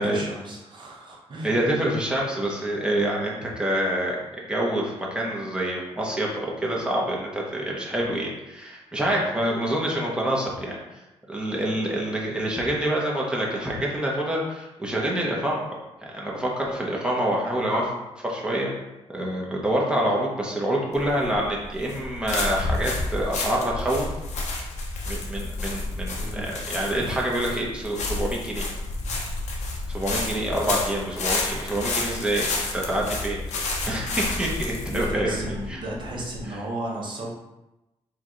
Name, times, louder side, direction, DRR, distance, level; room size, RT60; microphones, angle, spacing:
voice 1, 0.0-1.6 9.2-9.3 26.2-26.5 34.9-37.3, right 1 dB, 40° right, -2 dB, 0.9 m, -34 dB
voice 2, 1.4-10.8 11.3-15.7 16.0-17.9 18.2-18.7 19.1-24.1 25.1-28.7 29.9-35.8, right 1 dB, 10° right, -3 dB, 0.8 m, -27 dB
sound 1, 20.9-36.4, left 2 dB, 85° left, 0.8 m, -30 dB
4.6 x 2.4 x 3.7 m, 0.97 s
wide cardioid pair, 150°, 12 cm